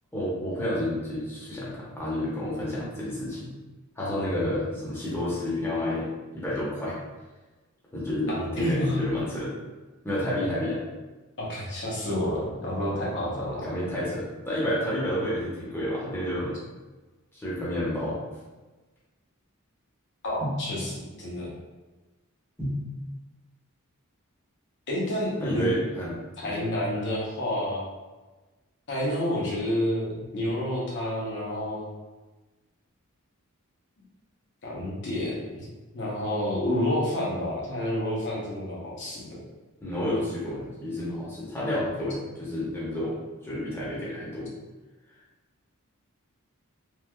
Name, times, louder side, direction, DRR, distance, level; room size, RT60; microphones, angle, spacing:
voice 1, 0.1-3.5 4.0-6.1 6.3-7.0 7.9-9.5 10.0-10.8 13.3-16.5 17.3-18.2 20.4-20.6 22.6-22.8 25.4-26.1 26.4-26.7 30.2-30.3 39.8-43.2 43.4-44.5, left 1 dB, 10° left, -8 dB, 0.7 m, -30 dB
voice 2, 4.0-4.3 8.3-9.0 11.4-13.7 20.2-21.5 24.9-25.7 26.4-27.9 28.9-31.9 34.6-35.7 35.9-39.4, left 1 dB, 55° left, -5 dB, 0.8 m, -29 dB
3.2 x 2.4 x 2.2 m, 1.2 s
head